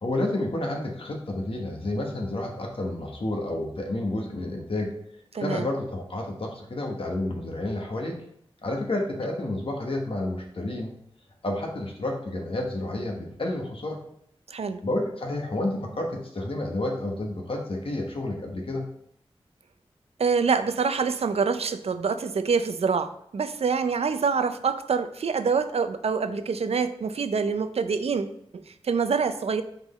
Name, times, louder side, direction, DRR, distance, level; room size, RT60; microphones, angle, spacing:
voice 1, 0.0-4.9 5.4-8.2 8.6-10.9 11.4-14.0 14.8-18.9, left 1 dB, 65° left, 0 dB, 1.1 m, -30 dB
voice 2, 5.3-5.7 14.5-14.8 20.2-29.6, right 5 dB, 85° right, 10 dB, 0.5 m, -26 dB
5.9 x 3.8 x 4.2 m, 0.72 s
wide cardioid pair, 60°, 10 cm